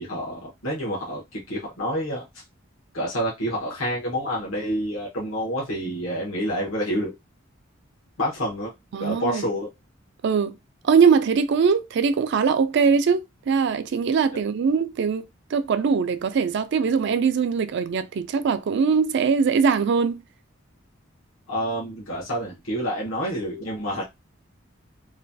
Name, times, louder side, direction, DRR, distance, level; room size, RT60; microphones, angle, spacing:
voice 1, 0.0-2.4 2.9-7.1 8.2-8.7 9.0-9.7 14.3-14.4 21.5-24.0, equal, 85° left, 1.1 m, -28 dB
voice 2, 8.9-9.5 10.2-10.6 10.8-15.2 15.5-20.2, right 6 dB, 60° right, 0.4 m, -21 dB
3.0 x 2.3 x 2.6 m
head